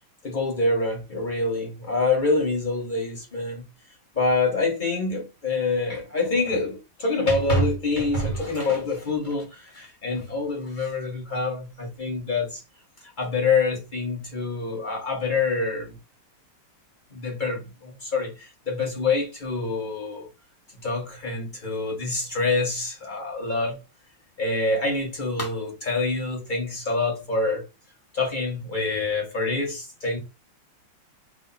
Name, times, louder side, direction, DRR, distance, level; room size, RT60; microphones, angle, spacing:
voice 1, 0.2-3.6 4.1-12.6 13.0-16.0 17.1-20.3 20.8-23.8 24.4-27.6 28.1-30.2, left 3 dB, 30° left, 0.9 m, -26 dB
3.5 x 2.5 x 4.0 m
omnidirectional pair, 2.4 m